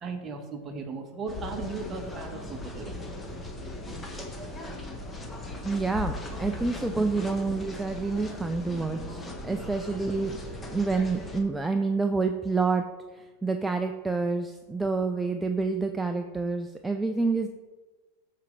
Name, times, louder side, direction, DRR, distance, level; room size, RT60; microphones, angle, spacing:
voice 1, 0.0-3.2 5.6-5.7 9.5-9.6, right 4 dB, 25° right, 3 dB, 1.3 m, -37 dB
sound 1, 1.3-11.4, left 1 dB, 15° left, 1.4 m, -38 dB
voice 2, 5.6-10.4 10.7-12.8 13.1-17.5, right 4 dB, 5° right, 5 dB, 0.4 m, -28 dB
13.0 x 5.0 x 3.2 m, 1.3 s
supercardioid pair, 120°, 0 cm